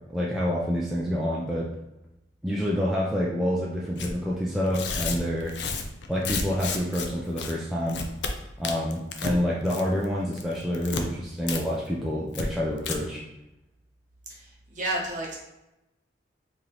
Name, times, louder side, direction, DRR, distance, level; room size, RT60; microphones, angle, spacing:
voice 1, 0.1-1.7 2.4-5.5 6.1-8.0 8.6-13.2, equal, ahead, -6 dB, 0.4 m, -27 dB
Tearing, 4.0-4.1 4.7-7.1 7.4-7.5 7.9-8.3 8.6-9.4 9.7-10.0 10.3-11.0 11.5-11.6 11.9-12.0 12.3-12.5 12.8-13.0, left 4 dB, 65° left, 0.4 m, -31 dB
voice 2, 14.3-15.4, right 1 dB, 40° right, -3 dB, 1.0 m, -31 dB
3.2 x 2.8 x 3.8 m, 0.94 s
head